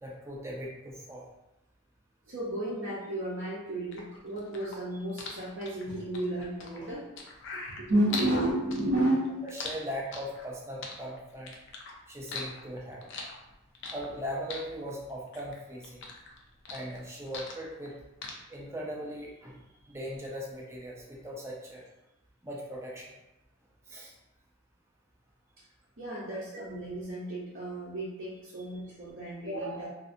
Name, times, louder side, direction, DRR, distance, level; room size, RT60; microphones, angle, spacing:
voice 1, 0.0-1.2 9.5-11.5 12.1-13.1 13.9-16.0 16.7-17.9 18.5-19.6 19.9-21.8 22.4-23.1 23.9-24.1 26.3-26.4, equal, 10° right, -4 dB, 0.5 m, -39 dB
voice 2, 2.3-7.0 7.5-9.4 26.0-29.9, right 1 dB, 55° right, -9 dB, 0.7 m, -32 dB
sound 1, 3.9-8.4 8.7-10.5 10.8-11.9 12.2-14.2 14.5-15.6 15.8-17.9 18.2-18.3, left 4 dB, 55° left, 0.4 m, -40 dB
2.6 x 2.5 x 2.5 m, 0.93 s
head